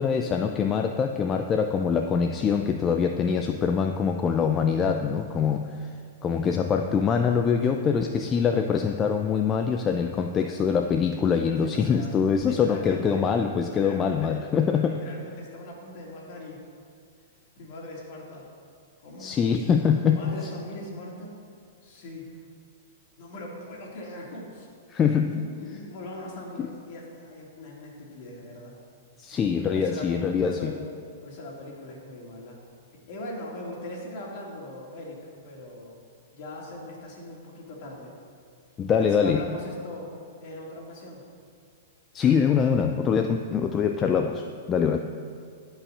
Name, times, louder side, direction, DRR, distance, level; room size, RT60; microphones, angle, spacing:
voice 1, 0.0-5.9 6.2-15.0 19.2-20.5 24.9-25.4 26.6-26.7 29.2-30.7 38.8-39.4 42.1-45.0, left 6 dB, 25° left, 5 dB, 0.5 m, -24 dB
voice 2, 11.6-12.1 12.4-13.2 13.7-14.4 14.9-16.6 17.6-18.4 19.0-19.3 20.0-21.4 21.8-22.3 23.2-24.7 25.4-28.7 29.7-30.9 31.2-32.6 33.1-35.2 35.4-35.9 36.3-38.1 38.9-40.1 40.4-41.2, left 1 dB, 50° left, -2 dB, 2.9 m, -40 dB
11.0 x 5.7 x 6.5 m, 2.3 s
figure-of-eight pair, 105°, 0 cm